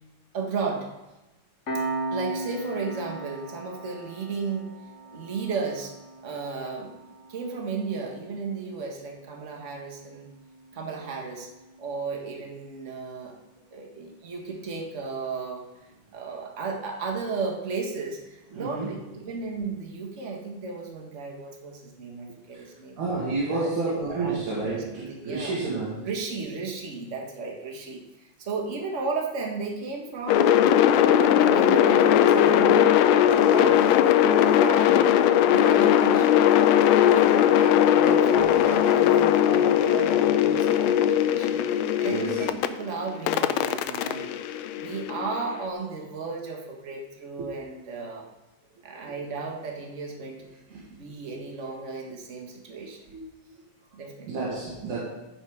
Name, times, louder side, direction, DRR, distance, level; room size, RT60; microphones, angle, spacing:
voice 1, 0.3-0.9 2.1-4.7 5.1-5.9 6.2-7.0 7.3-10.3 10.7-11.5 11.8-13.4 13.7-15.7 16.1-23.0 23.5-25.6 26.0-30.6 31.2-32.9 33.3-35.1 35.4-36.5 37.0-44.3 44.7-48.3 48.8-53.0 53.9-54.3, right 4 dB, 30° right, 0 dB, 1.5 m, -34 dB
Piano, 1.7-12.7, right 2 dB, 40° left, 1.1 m, -39 dB
voice 2, 18.6-18.9 22.3-22.4 23.0-26.1 37.8-37.9 38.7-38.8 41.0-41.1 42.1-42.4 47.4-47.5 48.9-49.2 50.7-50.8 52.8-53.3 54.3-55.0, right 3 dB, 80° right, -7 dB, 3.8 m, -30 dB
sound 1, 30.3-42.7 43.3-45.4, left 10 dB, 80° left, 1.7 m, -19 dB
14.5 x 6.6 x 5.1 m, 1.0 s
omnidirectional pair, 3.5 m